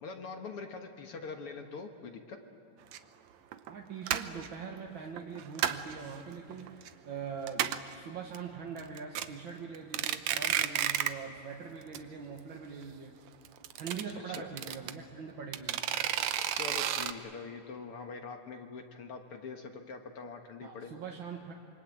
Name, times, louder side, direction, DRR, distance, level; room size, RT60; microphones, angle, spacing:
voice 1, 0.0-2.4 14.1-14.5 16.5-20.9, left 4 dB, 55° left, 5 dB, 2.0 m, -43 dB
sound 1, 2.9-3.0 3.5-3.7 4.1-4.5 5.2-5.9 6.3-6.9 7.2-7.3 7.5-7.9 8.3-8.4 8.8-9.3 9.7-11.3 11.5-11.6 11.9-12.0 12.3-12.4 13.5-14.9 15.5-17.1, right 11 dB, 70° right, 2.1 m, -31 dB
voice 2, 3.6-13.1 13.8-16.1 20.6-21.5, right 6 dB, 45° right, 0 dB, 1.9 m, -43 dB
27.0 x 24.5 x 8.9 m, 2.9 s
omnidirectional pair, 3.6 m